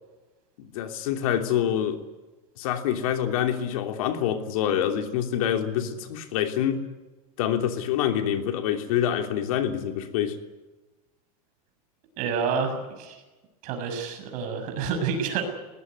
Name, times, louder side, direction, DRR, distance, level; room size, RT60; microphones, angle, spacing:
voice 1, 0.6-2.0 2.6-6.9 7.4-10.4, left 10 dB, 65° left, 5 dB, 3.1 m, -26 dB
voice 2, 12.2-13.2 13.6-15.4, right 6 dB, 40° right, 6 dB, 6.6 m, -28 dB
21.5 x 19.0 x 9.7 m, 1.2 s
supercardioid pair, 160°, 19 cm